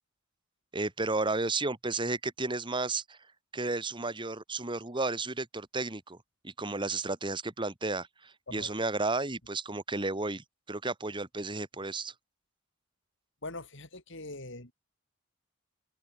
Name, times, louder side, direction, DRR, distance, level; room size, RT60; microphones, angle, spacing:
voice 1, 0.7-3.2 3.5-6.2 6.4-12.1, right 3 dB, 25° right, 1.7 m, -33 dB
voice 2, 13.4-14.7, left 2 dB, 60° left, 7.5 m, -42 dB
head